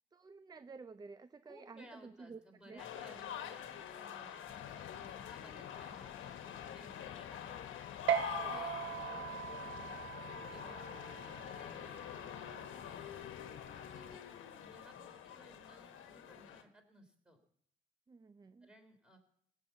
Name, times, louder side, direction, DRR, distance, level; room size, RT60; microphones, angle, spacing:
voice 1, 0.1-2.4 2.7-2.8 8.0-8.6 18.1-18.7, right 4 dB, 20° right, 13 dB, 0.4 m, -52 dB
voice 2, 1.5-7.6 8.3-8.7 8.9-10.1 10.4-10.8 11.1-13.2 13.9-14.3 14.7-17.4 18.6-19.2, equal, 5° right, 3 dB, 3.3 m, -61 dB
sound 1, 2.8-16.6, left 9 dB, 80° left, 1.3 m, -46 dB
sound 2, 4.5-14.2, left 10 dB, 45° left, 0.5 m, -53 dB
sound 3, 8.1-14.9, right 9 dB, 70° right, 0.7 m, -41 dB
17.0 x 5.7 x 8.1 m, 0.68 s
cardioid pair, 90°, 20 cm